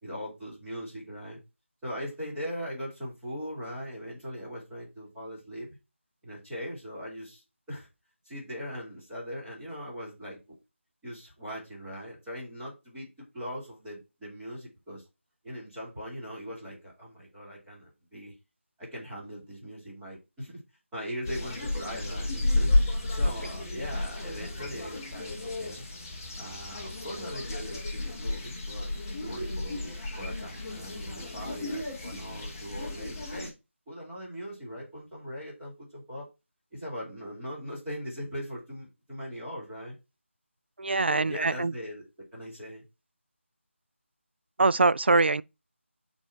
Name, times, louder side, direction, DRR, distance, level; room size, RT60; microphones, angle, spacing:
voice 1, 0.0-1.4 1.8-5.8 6.2-7.4 7.7-7.9 8.2-10.4 11.0-15.0 15.4-18.3 18.8-20.6 20.9-22.7 23.1-25.9 26.4-28.9 29.2-33.5 33.9-36.3 36.7-39.9 41.0-42.0 42.3-42.8, equal, 5° right, 2.5 m, -40 dB
sound 1, 21.2-33.5, left 2 dB, 15° left, 1.1 m, -32 dB
voice 2, 40.8-41.7 44.6-45.4, right 3 dB, 55° right, 0.3 m, -23 dB
7.2 x 4.3 x 4.3 m
figure-of-eight pair, 175°, 7 cm